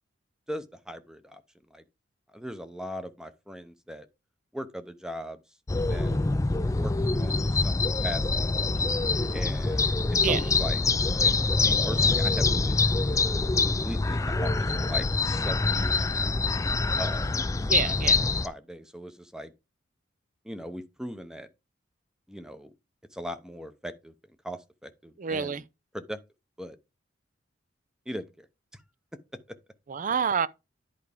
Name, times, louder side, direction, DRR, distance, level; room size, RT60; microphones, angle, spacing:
voice 1, 0.5-1.4 1.7-1.8 2.3-4.1 4.5-5.4 5.9-6.2 6.8-8.5 9.3-10.0 10.3-10.8 11.2-13.0 13.6-16.3 17.0-17.3 17.8-19.5 20.4-21.5 22.3-22.7 23.1-24.1 24.4-25.6 25.9-26.2 26.6-26.8 28.1-28.5 28.7-28.8, equal, 5° right, 0.7 m, -39 dB
sound 1, 5.7-18.5, left 3 dB, 15° left, 0.4 m, -25 dB
voice 2, 17.7-18.2 25.2-25.6 29.9-30.5, right 6 dB, 40° right, 0.5 m, -27 dB
11.0 x 4.7 x 3.5 m
head